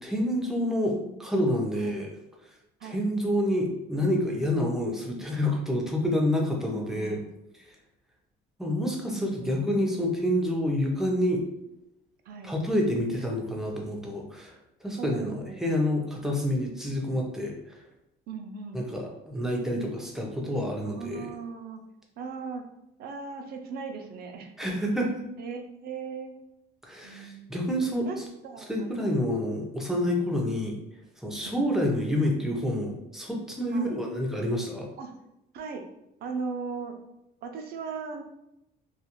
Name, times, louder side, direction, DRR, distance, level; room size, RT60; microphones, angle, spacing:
voice 1, 0.0-2.1 2.8-7.2 8.6-11.4 12.4-14.5 14.8-17.8 18.7-21.3 24.6-25.1 26.8-28.1 28.7-30.8 31.2-34.9, left 1 dB, ahead, -1 dB, 0.6 m, -28 dB
voice 2, 6.5-7.3 9.1-10.1 12.3-12.5 15.0-15.6 18.3-18.9 20.8-21.8 22.2-22.7 23.0-24.8 25.4-26.4 27.0-29.1 31.3-31.7 33.7-34.0 35.0-35.1 35.5-35.9 36.2-37.0 37.4-38.2, right 5 dB, 65° right, 5 dB, 0.5 m, -39 dB
2.4 x 2.3 x 2.9 m, 0.85 s
cardioid pair, 110°, 17 cm